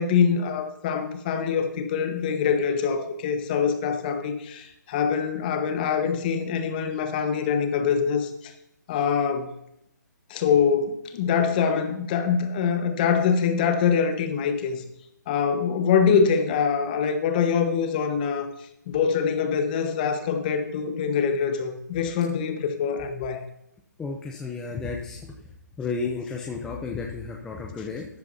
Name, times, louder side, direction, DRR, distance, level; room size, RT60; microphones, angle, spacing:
voice 1, 0.0-8.5 8.9-9.5 10.3-14.8 15.3-18.5 18.9-23.4, left 6 dB, 25° left, 7 dB, 1.3 m, -24 dB
voice 2, 24.0-25.4 25.8-28.1, left 4 dB, 5° left, 1 dB, 0.6 m, -32 dB
13.5 x 10.5 x 2.8 m, 0.80 s
figure-of-eight pair, 155°, 10 cm